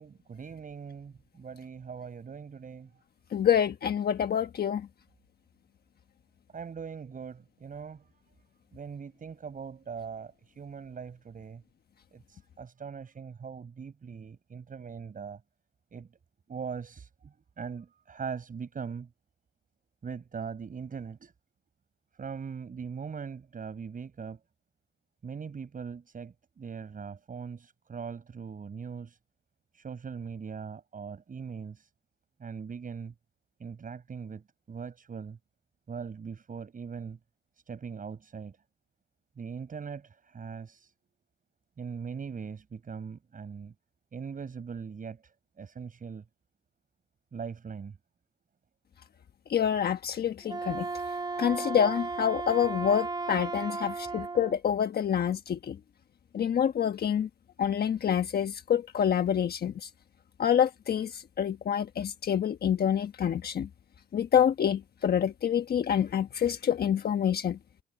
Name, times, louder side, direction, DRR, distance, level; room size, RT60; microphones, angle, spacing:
voice 1, 0.0-2.9 6.5-8.1 8.7-11.6 12.1-15.4 15.9-16.1 16.5-19.1 20.0-21.3 22.2-24.4 25.2-29.2 29.7-31.9 32.4-33.1 33.6-35.4 35.9-37.2 37.7-38.6 39.4-40.9 41.8-43.7 44.1-46.2 47.3-48.0 51.3-51.8 52.9-53.0 53.6-54.3, right 6 dB, 45° right, 7.5 m, -41 dB
voice 2, 3.3-4.9 49.5-50.9 51.4-55.8 56.3-57.3 57.6-59.9 60.4-63.7 64.1-67.6, left 9 dB, 50° left, 1.2 m, -27 dB
Wind instrument woodwind instrument, 50.4-54.6, right 3 dB, 20° right, 1.0 m, -35 dB
cardioid pair, 90°, 20 cm